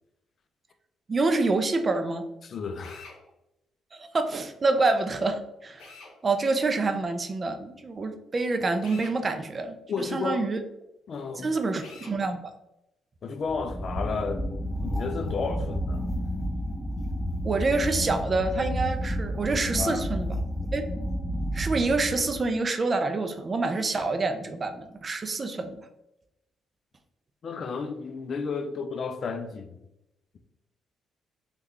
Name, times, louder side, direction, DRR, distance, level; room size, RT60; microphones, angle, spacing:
voice 1, 1.1-2.2 3.9-5.8 6.2-10.6 11.4-12.4 17.4-20.3 20.7-20.9 21.5-25.8, right 3 dB, 35° right, 0.4 m, -27 dB
voice 2, 2.4-3.1 9.9-10.5 11.1-11.6 13.2-14.5 14.8-16.0 19.8-20.0 27.4-29.8, left 5 dB, 55° left, 0.3 m, -32 dB
Drill, 2.8-3.2 5.8-6.1 8.8-9.2 11.8-12.2, left 3 dB, 85° left, 0.8 m, -46 dB
sound 1, 13.4-22.5, equal, 5° left, 0.7 m, -31 dB
3.5 x 2.3 x 3.1 m
cardioid pair, 90°, 0 cm